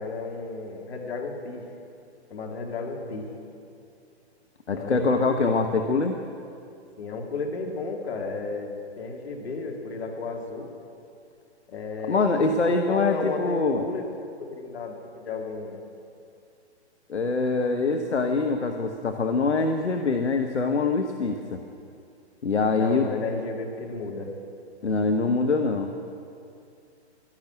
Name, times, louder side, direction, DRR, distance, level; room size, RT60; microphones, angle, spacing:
voice 1, 0.0-1.6 2.3-3.3 4.7-5.5 7.0-10.7 11.7-14.1 14.4-15.8 22.7-24.3, left 3 dB, 65° left, 1 dB, 2.5 m, -33 dB
voice 2, 4.7-6.2 12.1-13.8 17.1-21.6 22.4-23.1 24.8-25.9, left 3 dB, 80° left, 5 dB, 1.0 m, -24 dB
12.0 x 11.0 x 8.7 m, 2.5 s
figure-of-eight pair, 115°, 34 cm